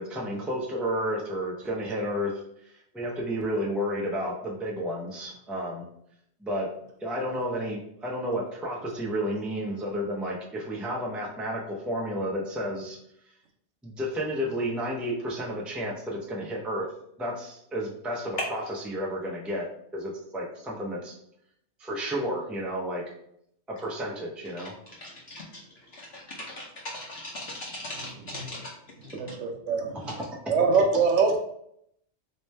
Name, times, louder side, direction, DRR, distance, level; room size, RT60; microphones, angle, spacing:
voice 1, 0.0-2.3 2.9-5.8 6.4-6.7 7.0-13.0 13.8-16.8 17.2-19.7 19.9-21.2 21.8-23.0 23.8-24.7 30.1-30.2 30.4-30.5, equal, ahead, -2 dB, 0.4 m, -31 dB
voice 2, 25.0-25.4 25.9-28.7, left 1 dB, 60° left, -3 dB, 0.8 m, -39 dB
voice 3, 29.1-30.1 30.5-31.4, right 4 dB, 75° right, 4 dB, 1.0 m, -23 dB
3.2 x 3.1 x 3.2 m, 0.73 s
omnidirectional pair, 1.3 m